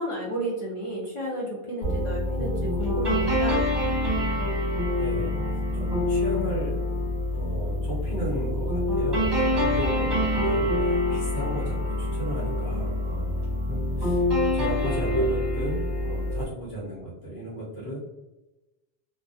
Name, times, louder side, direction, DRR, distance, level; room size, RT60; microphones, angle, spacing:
voice 1, 0.0-3.6, right 1 dB, 40° left, -6 dB, 0.5 m, -32 dB
sound 1, 1.8-16.4, left 1 dB, 30° right, 0.7 m, -26 dB
voice 2, 5.0-5.4 5.7-6.8 7.3-10.1 10.4-18.0, right 1 dB, 90° left, -6 dB, 1.0 m, -35 dB
2.2 x 2.2 x 2.6 m, 1.0 s
omnidirectional pair, 1.0 m